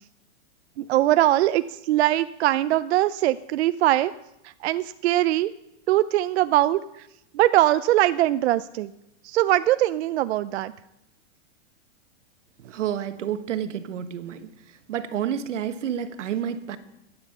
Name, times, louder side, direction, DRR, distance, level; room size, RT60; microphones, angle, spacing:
voice 1, 0.8-4.1 4.4-5.5 5.9-7.1 7.3-8.9 9.2-10.7, right 14 dB, 65° right, 13 dB, 0.5 m, -22 dB
voice 2, 12.6-14.5 14.9-16.8, right 9 dB, 85° right, 11 dB, 1.3 m, -29 dB
15.0 x 9.7 x 5.5 m, 0.87 s
supercardioid pair, 150°, 36 cm